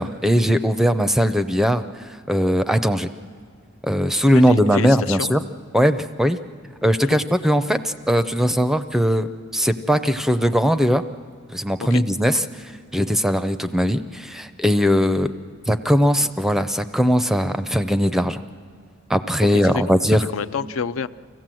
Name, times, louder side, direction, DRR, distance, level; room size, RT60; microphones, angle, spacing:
voice 1, 0.0-1.8 2.3-3.1 3.8-5.4 5.7-6.4 6.8-11.0 11.5-12.4 12.9-15.3 15.7-18.4 19.1-20.2, equal, ahead, 11 dB, 0.5 m, -19 dB
voice 2, 4.3-5.4 7.1-7.2 11.8-12.0 19.5-21.1, left 5 dB, 70° left, 13 dB, 0.5 m, -29 dB
25.0 x 16.0 x 7.6 m, 2.1 s
head